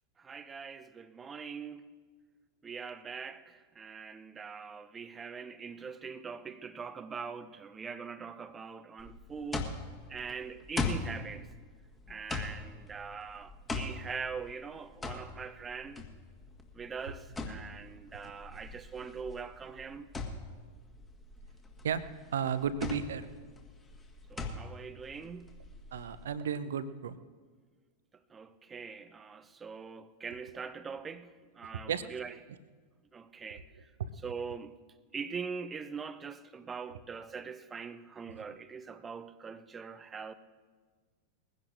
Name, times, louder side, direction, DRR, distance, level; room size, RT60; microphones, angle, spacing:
voice 1, 0.2-1.8 2.6-9.7 10.1-11.5 12.1-16.0 16.7-20.1 24.3-25.5 28.3-32.4 33.1-33.7 34.2-34.8 35.1-40.3, right 5 dB, 20° right, 0.7 m, -42 dB
sound 1, 9.0-26.2, left 3 dB, 15° left, 1.7 m, -40 dB
voice 2, 22.3-23.3 25.9-27.2 31.9-32.0 34.0-34.1 36.9-37.0, right 7 dB, 60° right, 0.7 m, -33 dB
21.5 x 16.0 x 2.6 m
figure-of-eight pair, 90°, 0 cm